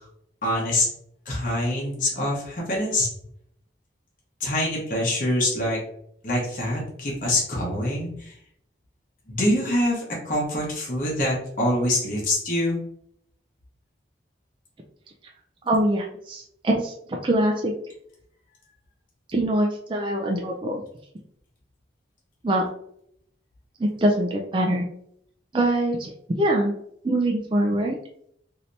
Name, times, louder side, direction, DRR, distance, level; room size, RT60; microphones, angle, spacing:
voice 1, 0.4-0.9 1.3-3.1 4.4-5.8 6.2-8.3 9.3-12.8, left 1 dB, 45° left, -4 dB, 1.0 m, -25 dB
voice 2, 15.7-17.7 19.3-20.8 22.4-22.6 23.8-24.9 25.5-26.1 26.4-26.7 27.0-28.0, right 1 dB, 25° right, 0 dB, 0.4 m, -23 dB
3.2 x 2.8 x 2.6 m, 0.70 s
head